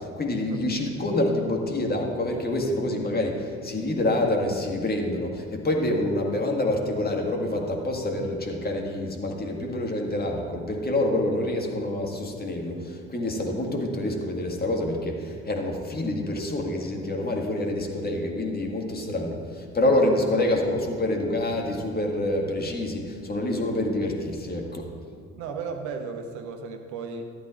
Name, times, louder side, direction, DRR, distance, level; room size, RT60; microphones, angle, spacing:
voice 1, 0.0-24.9, left 1 dB, 25° left, 1 dB, 1.9 m, -27 dB
voice 2, 25.4-27.3, right 5 dB, 55° right, 5 dB, 1.1 m, -35 dB
13.5 x 12.5 x 2.5 m, 2.1 s
figure-of-eight pair, 45°, 34 cm